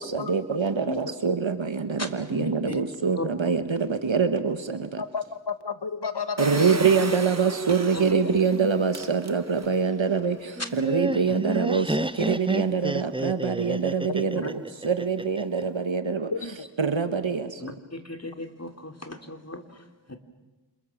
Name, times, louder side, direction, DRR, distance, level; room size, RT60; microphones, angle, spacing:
voice 1, 0.0-5.0 6.4-16.3 16.8-17.7, right 5 dB, 80° right, 9 dB, 1.5 m, -25 dB
voice 2, 2.0-2.8 3.1-3.3 7.9-8.0 14.4-14.5 17.6-20.2, left 2 dB, 35° left, 6 dB, 3.0 m, -37 dB
voice 3, 5.0-6.8 14.1-14.4 16.3-16.7, left 4 dB, 60° left, 11 dB, 1.6 m, -31 dB
Engine, 6.4-9.8 10.3-10.4 10.6-10.7, right 3 dB, 35° right, 1.3 m, -34 dB
Laughter, 10.6-15.6, right 1 dB, 10° right, 0.9 m, -30 dB
28.5 x 27.5 x 7.3 m, 1.1 s
wide cardioid pair, 40°, 45 cm